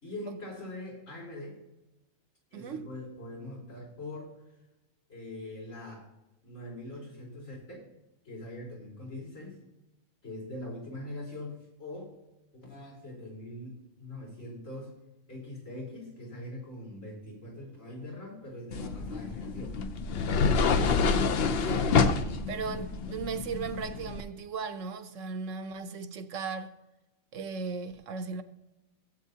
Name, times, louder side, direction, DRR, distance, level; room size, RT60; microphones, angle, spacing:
voice 1, 0.0-1.6 2.5-4.3 5.1-6.1 6.4-7.9 8.2-9.6 10.2-12.1 12.5-14.9 15.3-19.8, left 1 dB, 70° left, 4.4 m, -42 dB
voice 2, 2.5-2.9 21.4-22.0 22.5-26.7 27.3-28.4, right 5 dB, 70° right, 1.1 m, -37 dB
sound 1, 18.7-24.2, left 5 dB, 55° left, 0.8 m, -27 dB
17.0 x 8.2 x 2.8 m
omnidirectional pair, 1.4 m